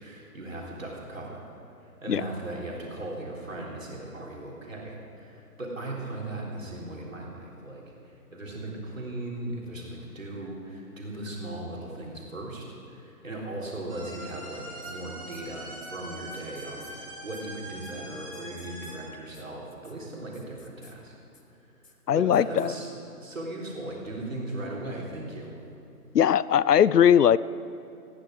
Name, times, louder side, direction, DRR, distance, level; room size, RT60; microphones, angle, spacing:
voice 1, 0.0-1.5 1.8-21.1 21.5-21.6 22.1-22.9 23.2-25.5, right 1 dB, 55° right, -3 dB, 3.8 m, -38 dB
sound 1, 13.9-19.0, right 1 dB, 20° right, 2.1 m, -42 dB
sound 2, 14.8-14.9 15.3-15.4 15.8-15.9 16.3-16.9 17.3-17.4 17.8-17.9 18.3-18.9 19.3-19.4 19.7-19.9 20.3-20.9 21.3-21.4 21.8-21.9 22.3-22.7, left 4 dB, 55° left, 1.5 m, -55 dB
voice 2, 22.1-22.7 26.1-27.4, left 9 dB, 80° left, 19 dB, 0.6 m, -20 dB
14.5 x 11.5 x 6.4 m, 2.8 s
hypercardioid pair, 180°, 47 cm